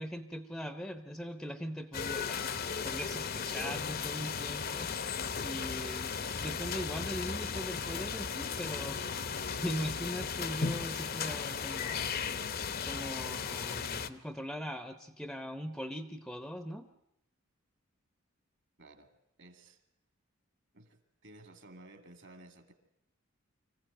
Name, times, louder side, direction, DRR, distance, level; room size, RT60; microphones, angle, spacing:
voice 1, 0.0-2.5 2.8-9.0 9.4-12.1 12.9-16.9, equal, ahead, 9 dB, 0.7 m, -40 dB
sound 1, 1.9-14.1, left 6 dB, 45° left, 0.8 m, -36 dB
voice 2, 18.8-19.1 19.4-19.8 20.7-22.7, right 2 dB, 55° right, 8 dB, 2.2 m, -54 dB
25.0 x 15.5 x 9.0 m, 0.82 s
head